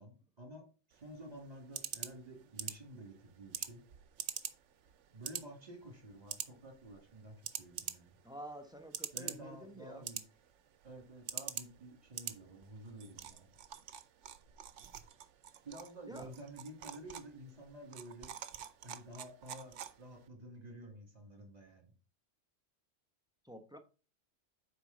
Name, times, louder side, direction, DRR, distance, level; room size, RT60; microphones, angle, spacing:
voice 1, 0.0-3.8 5.1-8.1 9.1-10.2 10.8-13.5 15.6-18.3 18.8-21.9, right 1 dB, 35° right, 2.2 m, -51 dB
sound 1, 0.9-20.3, right 9 dB, 85° right, 1.0 m, -47 dB
voice 2, 8.2-10.1 16.1-16.3 23.4-23.8, equal, 5° right, 0.6 m, -49 dB
7.9 x 5.0 x 3.9 m
omnidirectional pair, 1.2 m